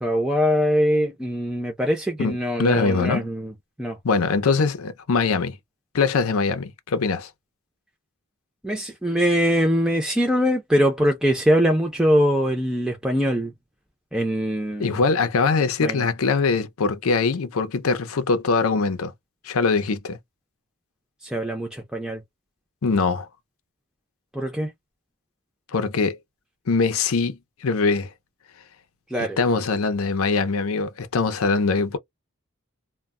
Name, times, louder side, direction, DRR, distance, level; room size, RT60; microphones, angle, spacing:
voice 1, 0.0-3.5 3.8-4.0 8.6-13.5 14.1-14.9 15.8-16.0 21.2-22.2 24.3-24.7 29.1-29.4, equal, 5° right, 0.4 m, -22 dB
voice 2, 2.2-3.3 4.0-5.6 5.9-7.3 14.8-19.1 19.4-20.2 22.8-23.3 25.7-26.2 26.7-28.1 29.2-32.0, left 4 dB, 80° left, 0.6 m, -22 dB
2.2 x 2.0 x 3.5 m
head